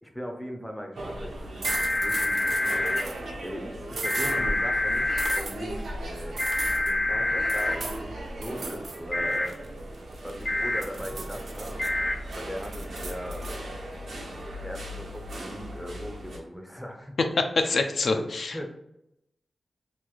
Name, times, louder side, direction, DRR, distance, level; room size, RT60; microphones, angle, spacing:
voice 1, 0.0-2.5 3.4-9.6 10.2-11.7 12.3-13.6 14.6-17.2 18.1-18.7, equal, ahead, 2 dB, 0.5 m, -39 dB
sound 1, 0.9-16.4, right 1 dB, 85° right, 0.9 m, -38 dB
sound 2, 1.6-3.0 4.0-5.4 6.4-7.7 9.1-9.5 10.5-10.8 11.8-12.1, left 1 dB, 45° left, 0.7 m, -26 dB
sound 3, 1.6-3.2 3.9-4.4 5.2-5.6 6.4-6.9 7.5-8.0 8.4-9.0 9.3-10.4 10.8-11.9 12.3-13.6, right 4 dB, 65° right, 0.4 m, -37 dB
voice 2, 17.4-18.7, left 3 dB, 60° left, 5 dB, 0.3 m, -26 dB
3.0 x 2.5 x 3.8 m, 0.82 s
wide cardioid pair, 165°, 0 cm